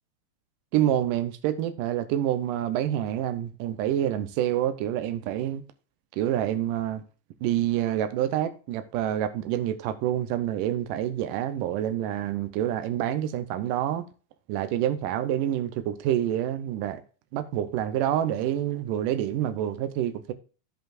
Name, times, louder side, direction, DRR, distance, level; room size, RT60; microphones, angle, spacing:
voice 1, 0.7-5.6 6.1-7.0 7.4-14.0 14.5-17.0 17.3-20.3, right 11 dB, 90° right, 2.2 m, -27 dB
15.0 x 5.2 x 2.4 m
omnidirectional pair, 3.7 m